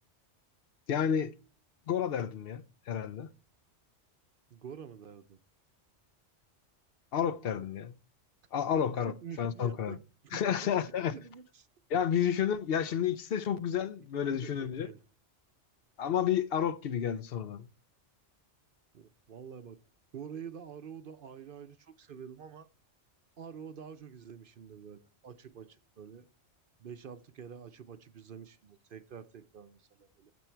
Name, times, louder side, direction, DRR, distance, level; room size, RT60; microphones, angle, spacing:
voice 1, 0.9-1.3 1.9-3.3 7.1-7.9 8.5-10.0 10.3-11.2 11.9-14.9 16.0-17.7, left 8 dB, 60° left, 0.8 m, -31 dB
voice 2, 4.5-5.4 8.9-10.7 11.1-11.7 14.3-15.0 18.9-19.8 20.1-22.7 23.4-26.3 26.8-30.3, right 7 dB, 55° right, 0.8 m, -47 dB
14.5 x 6.2 x 4.5 m
omnidirectional pair, 1.2 m